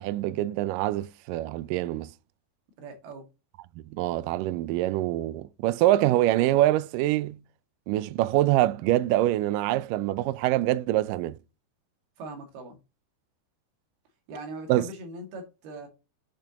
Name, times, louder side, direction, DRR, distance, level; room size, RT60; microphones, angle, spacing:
voice 1, 0.0-2.1 3.9-7.4 7.9-11.4 14.7-14.9, right 15 dB, 90° right, 1.9 m, -25 dB
voice 2, 2.8-3.3 12.2-12.8 14.3-15.9, right 2 dB, 75° right, 4.1 m, -40 dB
8.1 x 7.0 x 2.9 m
omnidirectional pair, 4.6 m